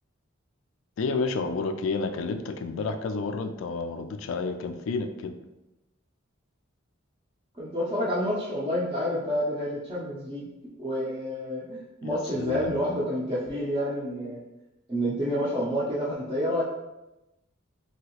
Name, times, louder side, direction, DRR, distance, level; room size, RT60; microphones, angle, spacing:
voice 1, 1.0-5.4 12.0-12.8, left 4 dB, 80° left, 8 dB, 0.3 m, -30 dB
voice 2, 7.5-10.5 10.8-14.4 14.9-16.6, equal, 25° right, -9 dB, 0.5 m, -29 dB
3.0 x 2.7 x 2.9 m, 0.97 s
head